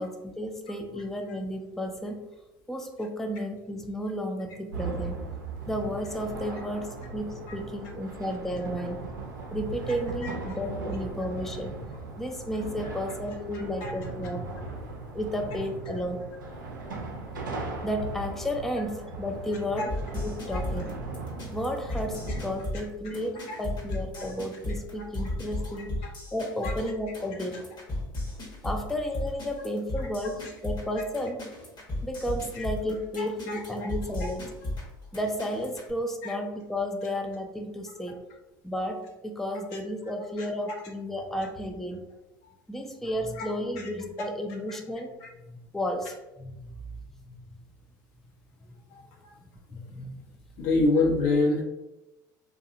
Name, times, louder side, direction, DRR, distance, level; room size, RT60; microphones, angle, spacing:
voice 1, 0.0-2.2 2.7-5.2 5.7-9.0 9.5-11.8 12.2-14.5 15.1-16.3 17.8-20.9 21.5-27.6 28.6-31.4 32.0-34.6 35.1-38.2 38.6-42.0 42.7-45.2 45.5-46.9 47.2-47.6 49.7-50.3, equal, 5° left, 3 dB, 0.4 m, -33 dB
sound 1, 4.7-22.6, right 3 dB, 90° right, 0.5 m, -38 dB
sound 2, 19.9-35.9, left 1 dB, 45° left, 1.0 m, -35 dB
voice 2, 33.2-33.9 36.2-36.4 39.7-39.8 40.4-40.7 42.4-42.5 43.4-43.5 45.2-45.3 48.9-49.3 50.6-51.6, left 3 dB, 70° left, -1 dB, 0.7 m, -27 dB
2.7 x 2.3 x 2.5 m, 1.0 s
hypercardioid pair, 70°, 10 cm